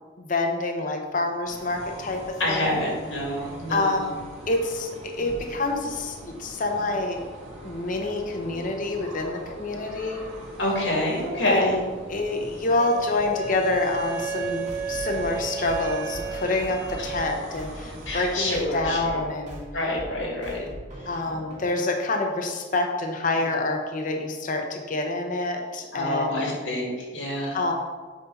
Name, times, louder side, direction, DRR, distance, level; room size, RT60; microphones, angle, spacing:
voice 1, 0.2-2.9 3.7-4.2 4.5-7.3 7.6-10.3 11.4-19.6 21.1-26.6 27.5-27.7, left 2 dB, 45° left, 3 dB, 0.8 m, -27 dB
sound 1, 1.5-18.6, right 1 dB, 80° right, 1.8 m, -42 dB
voice 2, 2.4-4.1 8.5-8.6 10.6-11.7 17.0-17.1 18.1-19.2 19.7-20.7 23.4-23.5 25.9-27.6, left 1 dB, 80° left, -2 dB, 2.2 m, -27 dB
Wind instrument woodwind instrument, 12.8-17.4, right 5 dB, 10° right, 1.4 m, -33 dB
sound 2, 14.6-21.6, equal, 40° right, 2.0 m, -41 dB
8.1 x 5.6 x 3.9 m, 1.4 s
head